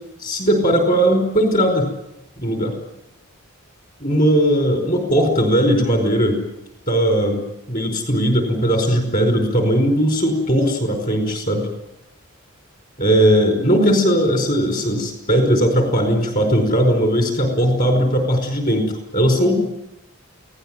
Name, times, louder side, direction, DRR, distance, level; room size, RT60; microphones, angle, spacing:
voice 1, 0.2-1.9 2.4-2.7 4.0-6.4 6.9-7.4 7.7-11.7 13.0-19.5, equal, 40° left, 5 dB, 5.1 m, -18 dB
29.0 x 18.0 x 9.2 m, 0.93 s
head